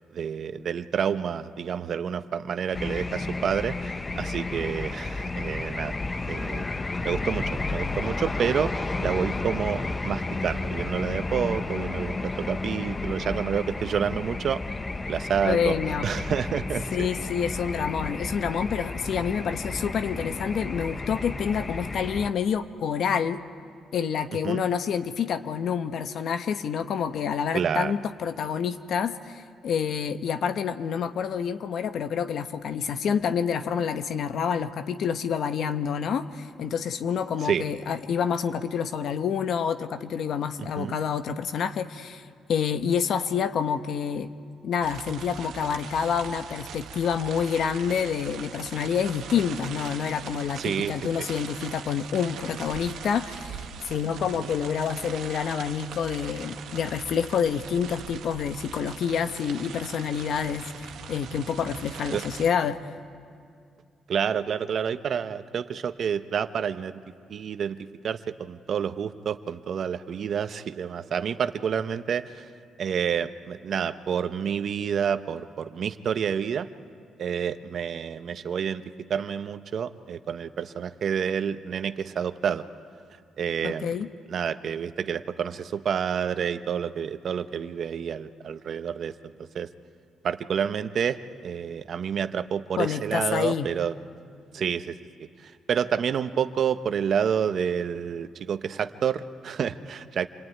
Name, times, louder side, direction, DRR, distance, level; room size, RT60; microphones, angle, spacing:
voice 1, 0.1-6.0 6.3-6.7 7.0-14.6 15.1-15.8 16.0-17.1 24.4-24.6 27.5-27.9 37.4-37.6 40.6-41.0 50.6-51.3 54.3-54.5 62.1-62.2 64.1-67.0 67.3-72.5 72.8-76.7 77.2-82.6 83.4-83.9 84.3-89.7 90.2-93.9 94.5-95.0 95.4-100.3, right 7 dB, 60° right, 11 dB, 1.0 m, -29 dB
sound 1, 2.7-22.3, left 3 dB, 25° left, 0.9 m, -32 dB
voice 2, 15.4-16.1 16.9-23.4 23.9-44.3 44.6-62.8 83.6-84.1 92.8-93.7, left 7 dB, 65° left, 10 dB, 1.0 m, -28 dB
sound 2, 44.8-62.5, right 7 dB, 80° right, 1.9 m, -41 dB
27.5 x 20.5 x 9.4 m, 2.3 s
cardioid pair, 90°, 0 cm